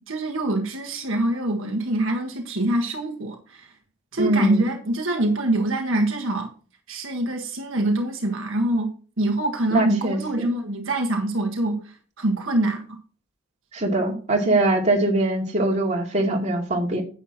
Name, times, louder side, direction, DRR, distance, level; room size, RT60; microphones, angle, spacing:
voice 1, 0.1-3.7 4.1-6.5 6.9-13.0, right 1 dB, 65° right, 1.6 m, -25 dB
voice 2, 4.2-4.7 9.7-10.5 13.7-17.0, right 2 dB, 35° right, 2.4 m, -22 dB
10.0 x 8.2 x 3.0 m
head